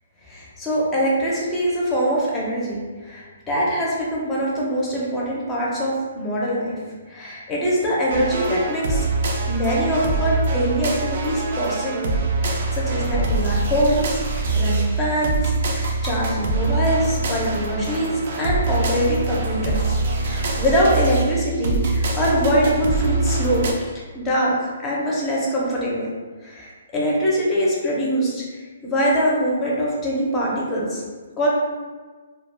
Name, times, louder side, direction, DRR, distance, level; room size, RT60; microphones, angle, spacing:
voice 1, 0.3-6.8 7.1-9.1 9.5-12.1 12.4-26.1 26.4-31.0 31.4-31.5, equal, 15° left, -5 dB, 0.6 m, -23 dB
sound 1, 8.1-23.7, right 3 dB, 50° right, 0.4 m, -24 dB
2.3 x 2.2 x 3.2 m, 1.4 s
hypercardioid pair, 160°, 0 cm